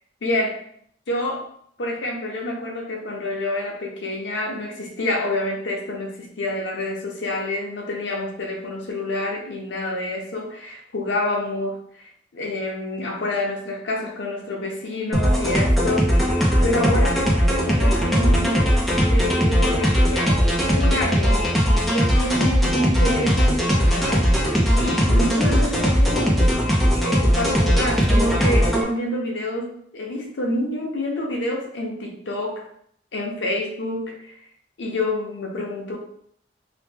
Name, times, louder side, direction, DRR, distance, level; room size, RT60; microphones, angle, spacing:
voice 1, 0.2-0.7 1.1-1.5 1.8-11.8 12.3-17.3 17.6-20.5 20.7-21.5 21.8-26.5 26.9-32.7 33.1-34.3 34.8-36.0, left 1 dB, 90° left, 1 dB, 0.7 m, -28 dB
sound 1, 15.1-28.8, equal, ahead, 0.4 m, -19 dB
2.9 x 2.1 x 3.3 m, 0.66 s
head